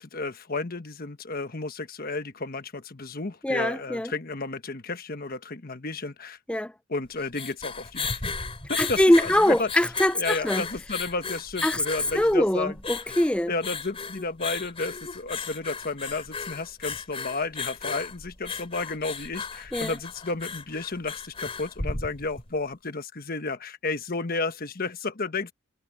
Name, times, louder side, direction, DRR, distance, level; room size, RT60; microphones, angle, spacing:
voice 1, 0.0-6.4 6.9-8.3 8.7-9.7 10.1-12.7 13.5-25.5, left 3 dB, 45° left, 1.3 m, -32 dB
voice 2, 3.4-4.1 6.5-6.7 8.8-10.6 11.6-11.8 12.1-13.5 19.7-20.0, left 1 dB, 5° left, 0.4 m, -23 dB
sound 1, 7.1-22.5, left 4 dB, 30° left, 3.2 m, -35 dB
head